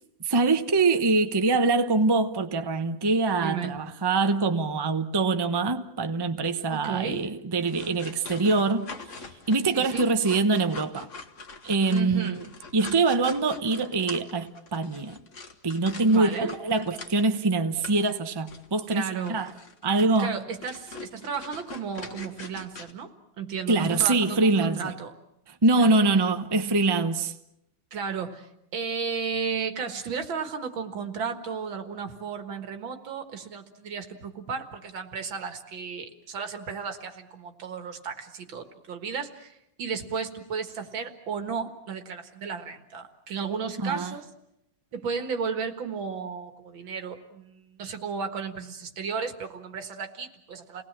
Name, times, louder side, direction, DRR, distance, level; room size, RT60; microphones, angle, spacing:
voice 1, 0.3-8.9 9.5-11.1 11.6-12.3 12.7-15.2 15.6-19.0 19.3-19.5 19.8-20.4 23.7-24.8 25.6-27.3 43.8-44.1, right 3 dB, 20° right, 0.7 m, -24 dB
voice 2, 3.4-3.8 6.7-7.3 9.7-10.1 11.9-12.4 16.1-16.5 18.9-19.4 20.2-25.1 25.7-26.0 27.9-44.3 44.9-50.8, right 6 dB, 80° right, 2.5 m, -34 dB
sound 1, 7.6-17.4 17.8-18.1 18.5-18.7 19.2-22.9, left 4 dB, 40° left, 1.8 m, -43 dB
29.5 x 19.5 x 7.4 m
omnidirectional pair, 2.1 m